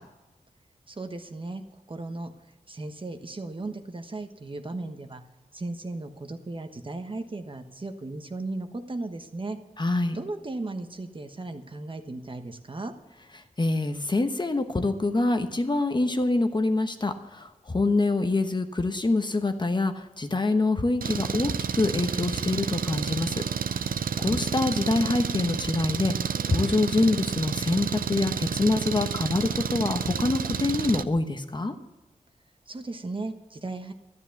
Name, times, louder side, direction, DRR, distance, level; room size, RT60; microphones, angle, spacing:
voice 1, 0.9-1.6 1.9-2.3 2.7-5.2 5.5-9.6 10.1-12.9 32.7-33.9, right 2 dB, 35° right, 7 dB, 1.2 m, -36 dB
voice 2, 9.8-10.2 13.6-23.4 24.2-26.1 26.5-31.7, left 2 dB, 30° left, 7 dB, 1.0 m, -25 dB
Engine, 21.0-31.0, right 7 dB, 80° right, 0.5 m, -30 dB
12.5 x 10.5 x 7.1 m, 1.0 s
wide cardioid pair, 100°, 15 cm